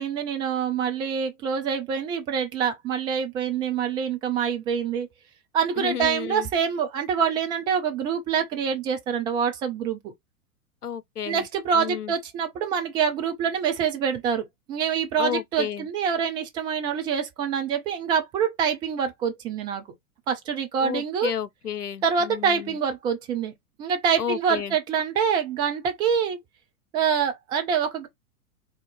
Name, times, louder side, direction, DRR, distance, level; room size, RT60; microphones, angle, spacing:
voice 1, 0.0-5.1 5.5-10.1 11.3-19.8 20.3-21.3 22.0-23.5 23.8-26.4 26.9-28.1, right 7 dB, 10° right, 0.4 m, -26 dB
voice 2, 5.8-6.5 10.8-11.5 11.7-12.1 15.2-15.9 20.8-22.8 24.2-24.8, left 8 dB, 90° left, 0.7 m, -32 dB
3.7 x 2.8 x 4.0 m
figure-of-eight pair, 105°, 45 cm